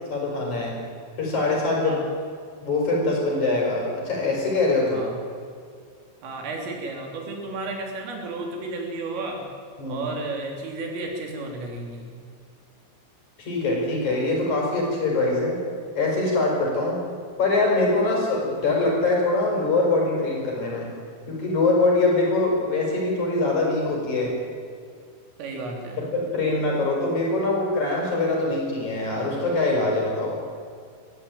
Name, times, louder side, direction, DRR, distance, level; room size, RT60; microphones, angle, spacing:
voice 1, 0.1-0.8 1.2-2.0 2.6-5.0 9.8-10.0 13.4-15.6 16.0-17.0 17.4-20.9 21.3-24.4 26.0-30.4, left 2 dB, 35° left, -2 dB, 6.9 m, -23 dB
voice 2, 6.2-9.4 9.9-12.1 25.4-26.0, right 2 dB, 90° right, 1 dB, 6.0 m, -33 dB
23.0 x 14.5 x 9.3 m, 2.2 s
omnidirectional pair, 5.6 m